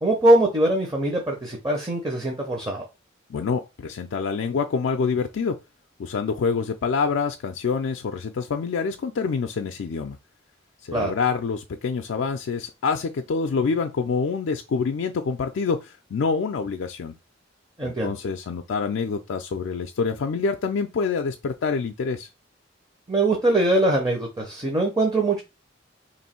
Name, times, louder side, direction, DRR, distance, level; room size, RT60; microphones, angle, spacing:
voice 1, 0.0-2.8 10.9-11.1 17.8-18.1 23.1-25.4, right 1 dB, 20° right, 0.7 m, -22 dB
voice 2, 3.3-5.6 6.0-10.2 10.8-17.1 17.8-22.3, left 5 dB, 70° left, 0.4 m, -26 dB
3.0 x 2.6 x 4.3 m
head